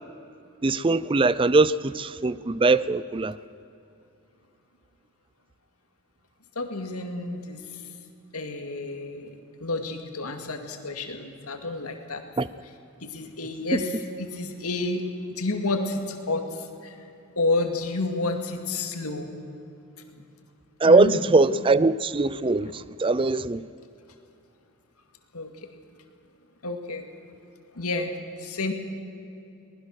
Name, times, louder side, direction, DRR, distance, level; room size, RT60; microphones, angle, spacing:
voice 1, 0.6-3.4 12.4-12.5 20.8-23.6, right 3 dB, 25° right, 0.4 m, -21 dB
voice 2, 6.6-7.6 8.3-9.3 9.6-12.2 13.0-17.0 17.4-19.3 20.1-20.2 20.8-21.1 22.6-22.7 23.6-23.7 25.3-25.7 26.6-27.1 27.7-28.1 28.4-28.7, left 2 dB, 85° left, 2.2 m, -30 dB
22.5 x 19.5 x 6.5 m
head